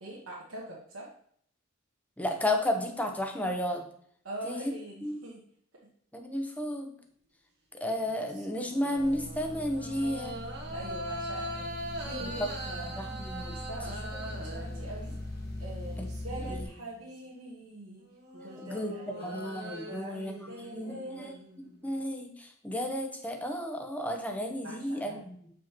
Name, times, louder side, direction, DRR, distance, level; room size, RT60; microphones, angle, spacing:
voice 1, 0.0-1.1 4.2-5.4 10.7-13.0 13.5-15.1 15.6-18.1 18.3-19.5 19.9-21.4 24.6-25.2, right 1 dB, 75° right, -5 dB, 1.2 m, -43 dB
voice 2, 2.2-3.9 4.4-4.7 5.0-5.2 6.1-6.9 7.7-10.4 12.4-12.5 13.0-13.6 16.5-16.6 18.6-18.9 19.2-21.3 21.6-25.5, left 1 dB, 5° left, 3 dB, 0.8 m, -33 dB
sound 1, 8.0-15.4 15.9-17.0 18.0-21.9, right 1 dB, 55° right, 1.3 m, -42 dB
sound 2, 8.9-16.7, left 1 dB, 50° left, 0.9 m, -40 dB
7.6 x 5.0 x 2.9 m, 0.64 s
head